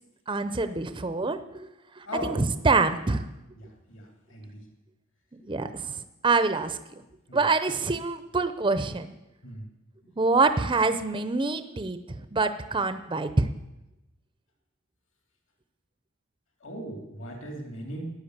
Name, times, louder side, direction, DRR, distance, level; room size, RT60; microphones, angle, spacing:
voice 1, 0.3-1.7 2.0-3.3 5.4-6.8 7.3-9.1 10.2-13.5, right 3 dB, 20° right, 10 dB, 0.6 m, -26 dB
voice 2, 2.1-2.4 3.6-4.5 7.3-7.4 9.4-9.6 16.6-18.1, equal, 60° left, 2 dB, 2.9 m, -38 dB
13.0 x 9.9 x 8.1 m, 0.97 s
head